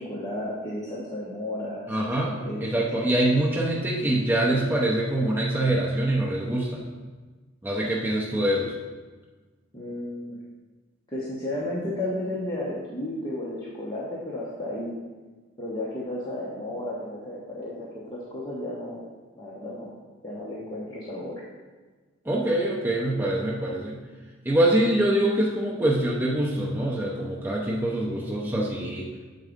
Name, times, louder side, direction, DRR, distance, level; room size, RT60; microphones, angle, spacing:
voice 1, 0.0-3.0 9.7-10.4 11.1-14.9 15.6-19.0 19.4-19.9 20.2-21.3, left 1 dB, 20° left, -6 dB, 1.0 m, -33 dB
voice 2, 1.9-2.3 2.6-6.8 7.6-8.7 22.2-24.0 24.4-29.1, right 1 dB, 10° right, -4 dB, 0.7 m, -24 dB
7.4 x 4.0 x 5.1 m, 1.3 s
head